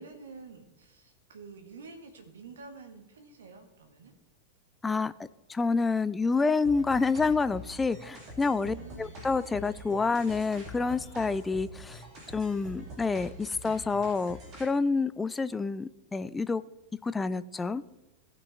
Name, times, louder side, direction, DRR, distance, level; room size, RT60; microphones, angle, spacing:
voice 1, 0.0-4.1 8.6-9.2, right 4 dB, 65° right, 6 dB, 1.5 m, -48 dB
voice 2, 4.8-12.0 12.3-16.6 17.0-17.8, left 4 dB, 10° left, 15 dB, 0.4 m, -28 dB
sound 1, 6.6-14.6, left 1 dB, 35° right, 2.7 m, -45 dB
17.0 x 6.0 x 3.4 m, 0.97 s
figure-of-eight pair, 90°, 0 cm